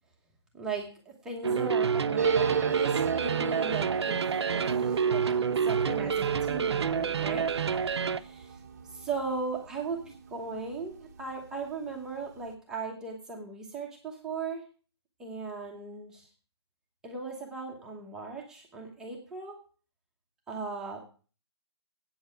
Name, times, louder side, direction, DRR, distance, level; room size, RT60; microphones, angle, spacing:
voice 1, 0.5-5.2 5.6-8.6 8.9-14.6 15.2-16.3 17.0-19.6 20.5-21.0, right 4 dB, 5° right, -1 dB, 1.1 m, -38 dB
sound 1, 1.4-8.2, right 6 dB, 70° right, 0.8 m, -28 dB
sound 2, 2.2-11.3 11.6-11.7 11.9-12.5, right 6 dB, 35° right, 0.9 m, -35 dB
8.7 x 7.1 x 8.2 m, 0.38 s
hypercardioid pair, 175°, 14 cm